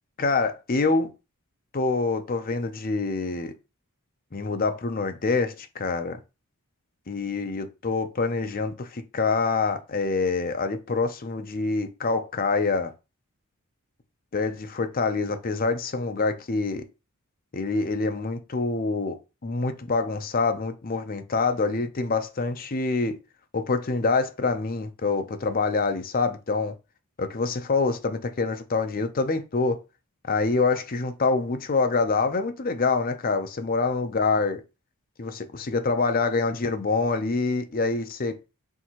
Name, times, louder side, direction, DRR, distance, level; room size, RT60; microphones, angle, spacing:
voice 1, 0.2-1.1 1.7-3.5 4.3-6.2 7.1-12.9 14.3-16.8 17.5-19.2 19.4-23.1 23.5-26.7 27.2-29.8 30.3-34.6 35.2-38.4, left 4 dB, 40° left, 0.6 m, -26 dB
4.6 x 3.4 x 2.9 m
head